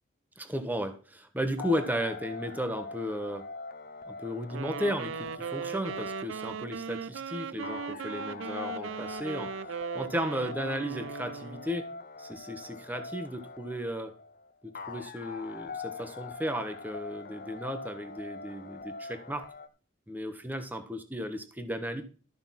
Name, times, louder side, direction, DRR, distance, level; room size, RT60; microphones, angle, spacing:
voice 1, 0.4-3.5 4.1-9.5 9.9-11.9 12.2-14.1 14.6-19.5 20.1-22.0, equal, 10° right, 7 dB, 1.2 m, -34 dB
sound 1, 1.6-19.7, left 4 dB, 45° left, 0.9 m, -43 dB
Wind instrument woodwind instrument, 4.5-11.7, right 7 dB, 70° right, 0.4 m, -38 dB
13.5 x 5.5 x 5.9 m, 0.38 s
head